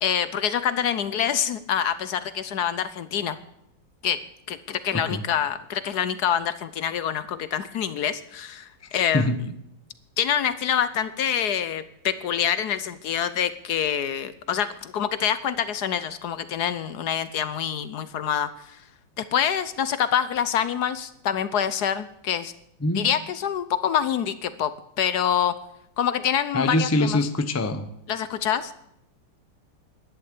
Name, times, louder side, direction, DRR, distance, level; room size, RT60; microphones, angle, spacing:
voice 1, 0.0-3.4 4.0-4.2 4.5-9.3 10.2-18.8 19.2-22.5 22.9-25.6 26.0-27.2 28.1-28.7, left 9 dB, 65° left, 14 dB, 1.2 m, -26 dB
voice 2, 4.9-5.2 8.9-9.4 22.8-23.1 26.5-27.9, left 2 dB, 15° left, 9 dB, 0.5 m, -24 dB
12.0 x 11.0 x 8.4 m, 0.77 s
omnidirectional pair, 2.1 m